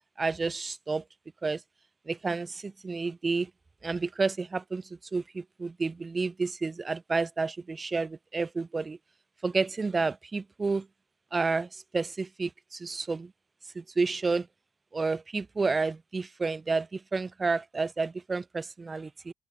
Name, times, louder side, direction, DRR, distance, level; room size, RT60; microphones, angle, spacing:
voice 1, 0.2-1.0 1.4-1.6 2.1-3.5 3.8-9.0 9.4-10.9 11.3-13.3 13.7-14.5 14.9-19.3, right 4 dB, 30° right, 6.2 m, -30 dB
cardioid pair, 90°, 0 cm